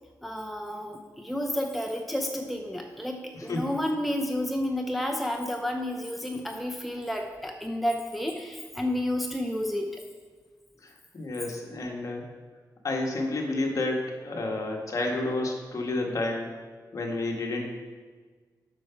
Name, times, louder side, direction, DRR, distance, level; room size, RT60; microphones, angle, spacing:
voice 1, 0.2-10.0, left 1 dB, ahead, 3 dB, 0.6 m, -31 dB
voice 2, 3.3-3.8 10.8-12.2 12.8-16.5 16.9-17.6, left 2 dB, 50° left, 1 dB, 1.5 m, -30 dB
7.5 x 5.9 x 5.8 m, 1.5 s
wide cardioid pair, 100°, 7 cm